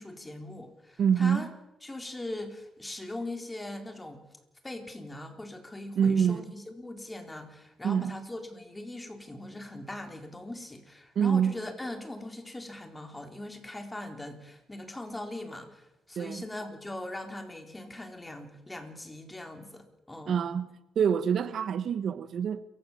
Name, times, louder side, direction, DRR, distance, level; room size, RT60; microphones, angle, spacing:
voice 1, 0.0-1.5 1.8-4.2 4.6-20.4, left 1 dB, 15° left, 4.0 m, -41 dB
voice 2, 1.0-1.5 6.0-6.4 7.8-8.1 11.1-11.6 16.2-16.4 20.3-20.7 21.0-22.6, right 7 dB, 60° right, 1.0 m, -26 dB
27.5 x 16.0 x 7.3 m
cardioid pair, 90°, 0 cm